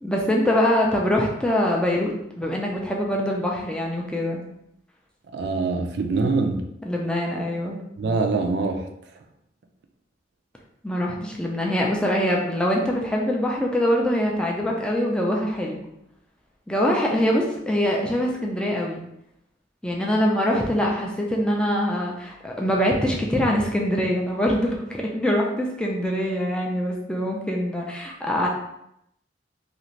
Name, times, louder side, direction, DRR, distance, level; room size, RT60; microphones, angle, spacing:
voice 1, 0.0-4.4 6.8-7.8 10.8-15.9 16.7-19.0 19.8-28.5, equal, 5° left, -1 dB, 0.4 m, -24 dB
voice 2, 5.3-6.6 8.0-8.9, right 3 dB, 65° right, 5 dB, 0.4 m, -24 dB
2.5 x 2.4 x 3.1 m, 0.80 s
head